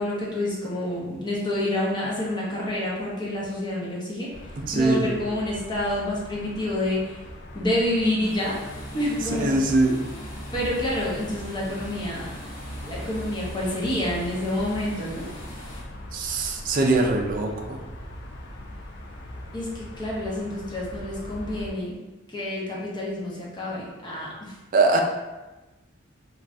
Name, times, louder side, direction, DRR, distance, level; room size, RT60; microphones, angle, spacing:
voice 1, 0.0-4.3 4.7-7.2 7.5-8.6 8.9-9.6 10.5-12.3 12.8-15.3 19.5-24.5, left 1 dB, 20° left, -5 dB, 0.7 m, -28 dB
sound 1, 4.3-21.7, left 1 dB, 60° left, 0.4 m, -40 dB
voice 2, 4.6-5.1 9.4-10.0 16.1-17.8 24.7-25.0, right 2 dB, 45° right, 2 dB, 0.4 m, -22 dB
sound 2, 8.2-15.8, equal, 80° left, 0.9 m, -42 dB
2.5 x 2.4 x 3.2 m, 1.1 s
head